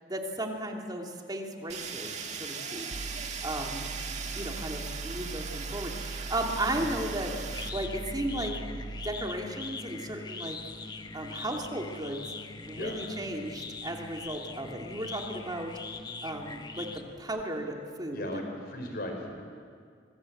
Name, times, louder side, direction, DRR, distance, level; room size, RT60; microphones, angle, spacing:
voice 1, 0.1-2.1 2.4-2.9 3.4-3.9 4.4-7.3 7.7-8.5 9.0-10.6 11.1-12.2 12.6-15.7 16.2-18.4, right 1 dB, 25° right, 2 dB, 2.7 m, -35 dB
Fire, 1.7-7.7, right 6 dB, 40° right, 2.0 m, -39 dB
sound 1, 2.9-9.1, right 3 dB, 70° right, 0.9 m, -40 dB
sound 2, 7.0-17.4, left 4 dB, 25° left, 1.0 m, -42 dB
voice 2, 18.1-19.6, left 1 dB, 55° left, 3 dB, 5.0 m, -38 dB
25.0 x 23.5 x 7.9 m, 2.1 s
head